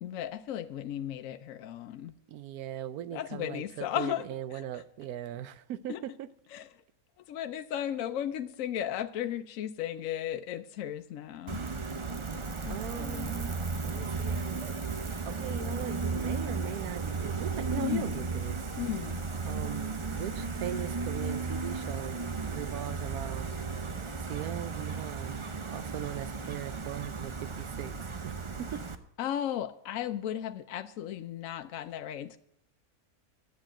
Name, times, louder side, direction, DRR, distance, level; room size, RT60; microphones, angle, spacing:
voice 1, 0.0-2.1 3.1-4.2 4.5-4.8 5.9-6.0 6.5-6.7 7.3-11.6 12.6-13.4 17.8-18.3 18.8-19.2 29.2-32.4, left 11 dB, 70° left, 1.0 m, -35 dB
voice 2, 2.3-6.3 12.7-13.5 13.8-14.7 15.2-18.7 19.4-23.6 24.2-28.0 28.2-28.8, right 11 dB, 80° right, 1.2 m, -40 dB
Gull seagull, 11.5-28.9, right 4 dB, 30° right, 0.5 m, -35 dB
10.5 x 8.1 x 8.8 m
omnidirectional pair, 1.6 m